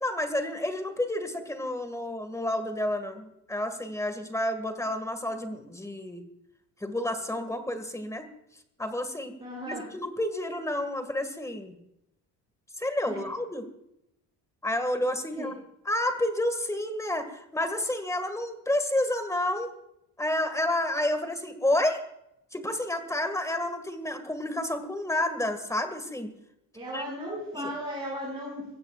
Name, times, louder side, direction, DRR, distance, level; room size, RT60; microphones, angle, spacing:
voice 1, 0.0-6.2 6.8-8.3 8.8-9.3 9.6-11.8 12.8-13.6 14.6-15.5 15.9-19.7 20.2-22.0 22.5-26.3 26.9-27.0 27.5-27.7, left 1 dB, 10° left, 8 dB, 2.0 m, -30 dB
voice 2, 9.4-9.8 13.1-13.2 15.3-15.5 26.7-28.7, equal, 10° right, -5 dB, 6.1 m, -36 dB
22.5 x 17.0 x 2.5 m, 0.80 s
cardioid pair, 140°, 39 cm